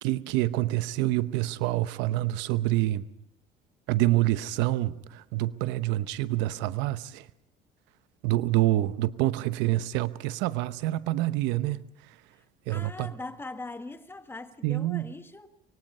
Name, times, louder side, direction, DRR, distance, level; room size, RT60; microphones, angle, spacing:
voice 1, 0.0-3.1 3.9-7.3 8.2-12.1 12.7-13.1 14.6-15.1, right 16 dB, 80° right, 1.0 m, -27 dB
voice 2, 12.3-15.5, left 2 dB, 10° left, 1.6 m, -41 dB
24.5 x 23.5 x 5.5 m
cardioid pair, 120°, 18 cm